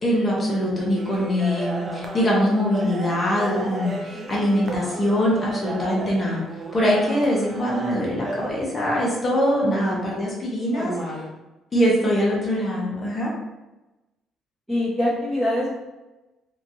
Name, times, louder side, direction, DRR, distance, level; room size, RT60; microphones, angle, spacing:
voice 1, 0.0-6.4 6.7-10.9 11.7-13.3, equal, 25° left, -4 dB, 0.8 m, -23 dB
sound 1, 0.9-8.5, right 2 dB, 35° right, 0.4 m, -34 dB
voice 2, 9.6-10.2 10.7-11.3 14.7-15.7, equal, 5° right, -12 dB, 0.9 m, -25 dB
2.9 x 2.5 x 2.7 m, 1.0 s
cardioid pair, 140°, 0 cm